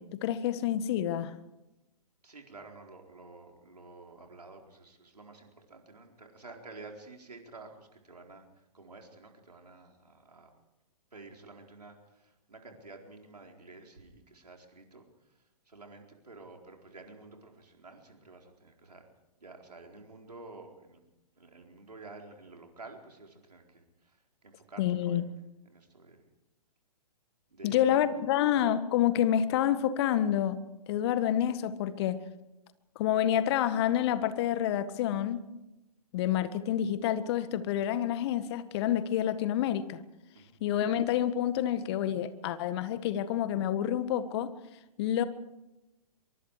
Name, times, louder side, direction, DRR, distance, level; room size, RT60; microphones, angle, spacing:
voice 1, 0.0-1.4 24.8-25.2 27.6-30.6 30.9-32.2 32.9-35.5 36.1-40.0 40.6-44.5 45.0-45.2, left 10 dB, 40° left, 13 dB, 1.6 m, -28 dB
voice 2, 2.2-8.4 8.7-10.5 11.1-15.1 15.7-19.1 19.4-21.0 21.4-25.3 25.6-26.2 27.5-28.0 40.3-40.6, right 3 dB, 80° right, 2 dB, 4.4 m, -51 dB
24.0 x 23.5 x 4.9 m, 0.95 s
figure-of-eight pair, 115°, 20 cm